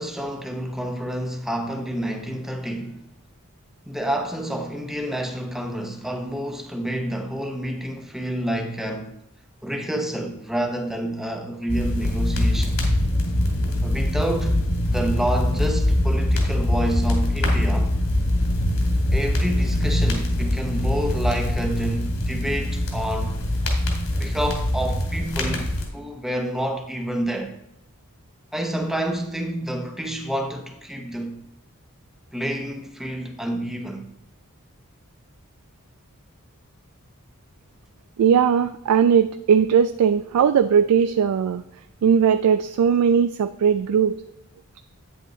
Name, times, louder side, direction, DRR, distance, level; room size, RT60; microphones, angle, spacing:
voice 1, 0.0-3.1 3.9-9.1 9.6-12.8 13.8-17.9 19.1-23.4 24.1-27.5 28.5-31.4 32.3-34.1, right 1 dB, ahead, 0.8 m, -28 dB
sound 1, 11.7-25.9, left 1 dB, 75° left, 2.4 m, -23 dB
voice 2, 38.2-41.6 42.0-44.2, right 7 dB, 85° right, 0.3 m, -19 dB
9.3 x 7.7 x 3.1 m
head